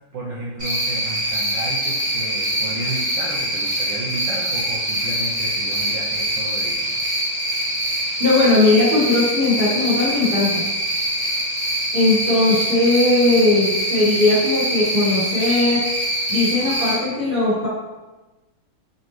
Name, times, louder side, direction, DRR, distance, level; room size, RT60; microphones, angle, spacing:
voice 1, 0.1-7.5, right 1 dB, 70° right, -6 dB, 1.1 m, -33 dB
Cricket, 0.6-16.9, right 1 dB, 25° right, 0.6 m, -24 dB
voice 2, 8.2-10.6 11.9-15.8 16.3-17.7, left 2 dB, 30° left, -11 dB, 1.2 m, -18 dB
4.2 x 2.5 x 3.0 m, 1.1 s
omnidirectional pair, 2.4 m